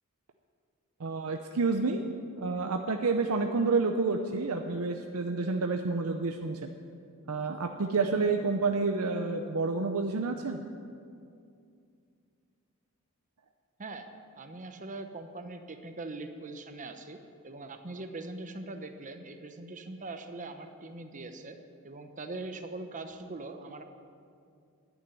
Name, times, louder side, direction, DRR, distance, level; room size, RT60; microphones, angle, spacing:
voice 1, 1.0-2.0 2.4-6.7 7.3-10.6, right 4 dB, 75° right, 4 dB, 0.7 m, -29 dB
voice 2, 14.4-17.2 17.4-21.6 21.8-23.8, right 2 dB, 35° right, 7 dB, 1.0 m, -41 dB
11.0 x 9.0 x 9.7 m, 2.4 s
head